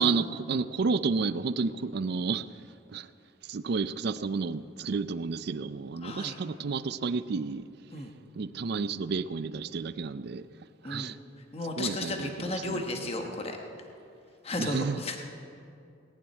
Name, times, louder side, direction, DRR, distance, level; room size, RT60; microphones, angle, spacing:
voice 1, 0.0-2.5 2.9-3.1 3.5-7.6 8.3-10.4 10.8-11.2 11.8-12.8 14.6-15.0, right 4 dB, 55° right, 0.4 m, -31 dB
voice 2, 6.0-6.4 7.9-8.1 10.8-11.2 11.5-13.6 14.4-15.2, left 2 dB, 30° left, 1.1 m, -34 dB
18.5 x 7.2 x 9.4 m
head